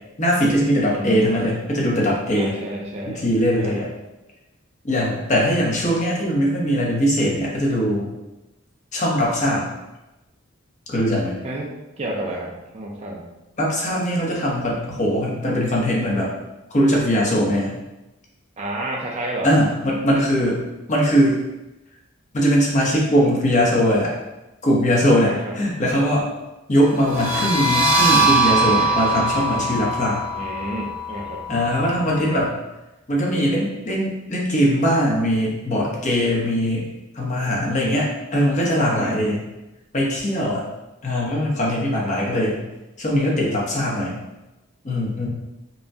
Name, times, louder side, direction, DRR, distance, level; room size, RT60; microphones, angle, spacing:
voice 1, 0.2-2.5 3.0-3.9 4.8-8.1 8.9-9.7 10.9-11.4 13.6-16.3 16.7-17.7 19.4-21.4 22.3-24.1 24.6-26.3 26.7-30.2 31.5-32.6 33.1-36.9 37.1-39.4 39.9-40.6 41.0-42.7 43.0-44.2 44.8-45.3, equal, 35° left, -3 dB, 0.9 m, -21 dB
voice 2, 0.9-1.3 2.4-3.2 3.6-3.7 11.4-13.3 18.6-19.5 25.2-25.5 30.3-31.4 38.9-39.3, right 1 dB, 30° right, -2 dB, 0.4 m, -30 dB
sound 1, 27.0-32.4, right 2 dB, 75° right, 1.1 m, -22 dB
5.4 x 2.2 x 2.7 m, 0.99 s
head